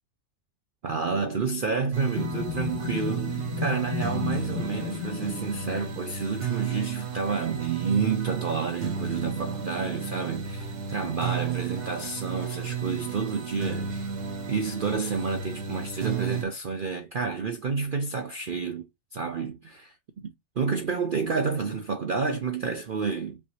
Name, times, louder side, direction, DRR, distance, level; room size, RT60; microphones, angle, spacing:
voice 1, 0.8-14.1 14.5-18.8 19.1-23.4, right 5 dB, 70° right, 0.5 m, -30 dB
sound 1, 1.9-16.4, right 6 dB, 85° right, 1.7 m, -33 dB
sound 2, 2.1-6.1, left 10 dB, 85° left, 1.1 m, -34 dB
5.4 x 2.7 x 3.1 m
omnidirectional pair, 1.7 m